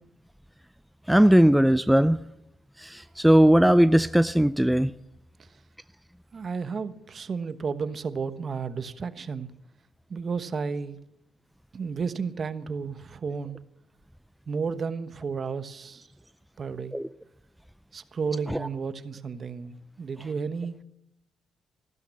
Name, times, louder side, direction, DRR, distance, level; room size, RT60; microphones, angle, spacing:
voice 1, 1.1-2.2 2.8-4.9 16.9-17.1 18.5-18.7, equal, 5° right, 0.5 m, -19 dB
voice 2, 6.3-9.5 10.1-11.0 11.7-13.6 14.5-16.1 16.6-17.0 17.9-20.8, right 5 dB, 45° right, 1.2 m, -32 dB
15.0 x 12.5 x 7.6 m
cardioid pair, 90°, 0 cm